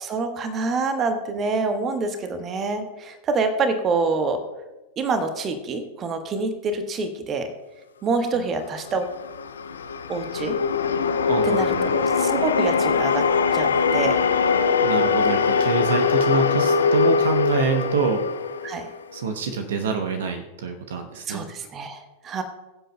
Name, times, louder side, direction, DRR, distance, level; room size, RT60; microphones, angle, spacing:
voice 1, 0.0-4.4 5.0-7.5 8.0-9.1 10.1-10.6 11.4-13.2 13.5-14.2 18.6-18.9 21.3-22.4, right 3 dB, 25° right, 7 dB, 1.1 m, -26 dB
sound 1, 8.9-19.3, left 5 dB, 70° left, 0.5 m, -22 dB
voice 2, 11.3-11.9 14.8-18.2 19.1-21.5, right 5 dB, 60° right, 5 dB, 0.9 m, -26 dB
22.0 x 7.7 x 2.2 m, 1.1 s
figure-of-eight pair, 90°, 0 cm